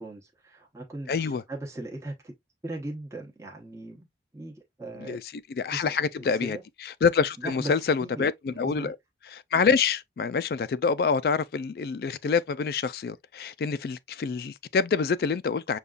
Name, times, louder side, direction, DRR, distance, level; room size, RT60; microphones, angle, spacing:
voice 1, 0.0-2.3 2.6-4.1 4.3-5.2 5.7-6.6 7.4-8.9, right 2 dB, 15° right, 0.9 m, -39 dB
voice 2, 1.1-1.4 5.0-5.2 5.6-6.6 7.0-9.0 9.3-15.8, left 5 dB, 55° left, 0.3 m, -26 dB
6.8 x 2.3 x 2.3 m
head